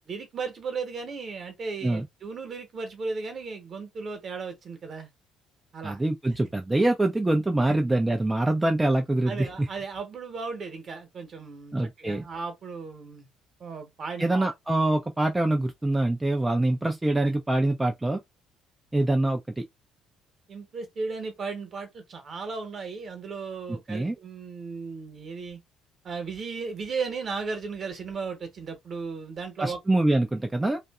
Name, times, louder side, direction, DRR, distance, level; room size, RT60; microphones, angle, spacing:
voice 1, 0.1-5.1 5.7-6.0 7.7-7.8 9.2-13.3 13.6-14.5 20.5-25.6 26.0-29.8, right 4 dB, 45° right, 1.0 m, -35 dB
voice 2, 5.8-9.7 11.7-12.2 14.2-18.2 18.9-19.6 23.7-24.1 29.6-30.8, right 2 dB, 15° right, 0.4 m, -25 dB
2.6 x 2.4 x 2.3 m
figure-of-eight pair, 50°, 0 cm